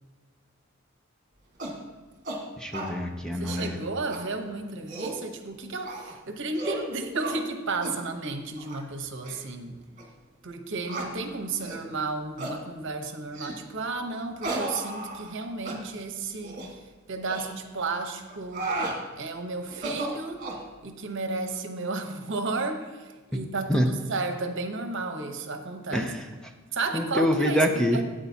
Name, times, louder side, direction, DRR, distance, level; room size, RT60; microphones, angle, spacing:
sound 1, 1.6-1.8 2.2-2.4 2.7-2.9 3.3-3.7 4.1-4.2 4.7-5.2 5.8-6.1 6.5-6.8 7.2-7.4 7.8-8.0 8.6-8.8 9.2-9.4 10.0-10.1 10.9-11.1 11.6-11.8 12.4-12.6 13.3-13.6 14.4-15.4 15.7-15.8 16.4-16.7 17.3-17.5 18.3-19.0 19.7-20.6, right 2 dB, 40° right, 1.8 m, -34 dB
voice 1, 2.6-3.8 23.7-23.9 25.9-26.3 26.9-28.0, equal, 5° left, 4 dB, 0.6 m, -25 dB
voice 2, 3.4-9.8 10.4-16.6 17.1-18.8 19.2-20.5 20.8-26.1 26.7-27.6 27.9-28.0, right 3 dB, 65° right, 6 dB, 0.9 m, -33 dB
13.5 x 8.8 x 2.8 m, 1.3 s
head